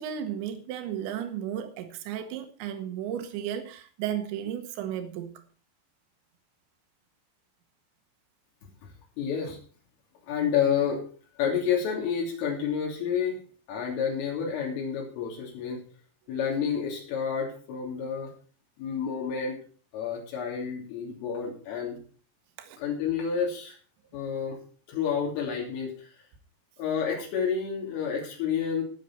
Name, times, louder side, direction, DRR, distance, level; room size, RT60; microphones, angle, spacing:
voice 1, 0.0-5.3 22.6-22.8, right 10 dB, 70° right, 3.7 m, -34 dB
voice 2, 9.2-9.6 10.3-11.0 11.4-13.4 13.7-15.8 16.3-18.3 18.8-19.6 19.9-22.0 22.8-23.8 24.1-24.6 24.9-26.1 26.8-28.8, left 7 dB, 70° left, 5.5 m, -29 dB
20.0 x 7.3 x 4.2 m
omnidirectional pair, 6.0 m